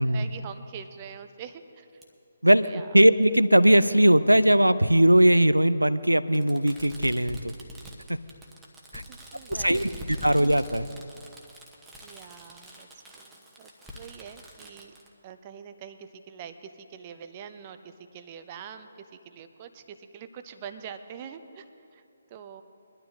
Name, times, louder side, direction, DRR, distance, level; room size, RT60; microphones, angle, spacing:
voice 1, 0.0-2.0 2.5-2.9 8.9-9.9 12.0-14.9 15.2-22.0 22.3-22.6, right 7 dB, 25° right, 9 dB, 0.7 m, -44 dB
Fireworks, 2.0-2.1 3.2-3.3 4.6-4.7 6.3-15.1, left 1 dB, 5° right, 1.2 m, -44 dB
voice 2, 2.4-7.5 8.1-8.2 8.9-9.0 9.5-10.9, right 1 dB, 85° right, 15 dB, 0.5 m, -20 dB
22.5 x 12.0 x 2.8 m, 2.5 s
figure-of-eight pair, 140°, 0 cm